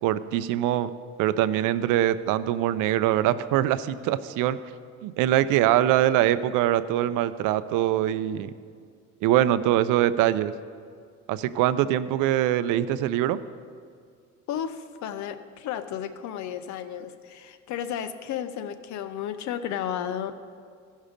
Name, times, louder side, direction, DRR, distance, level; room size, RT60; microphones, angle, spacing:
voice 1, 0.0-0.9 1.2-4.6 5.0-8.5 9.2-10.5 11.3-13.4, right 12 dB, 90° right, 14 dB, 0.5 m, -23 dB
voice 2, 14.5-20.3, left 9 dB, 70° left, 10 dB, 0.7 m, -33 dB
16.0 x 5.5 x 5.1 m, 2.1 s
cardioid pair, 130°, 30 cm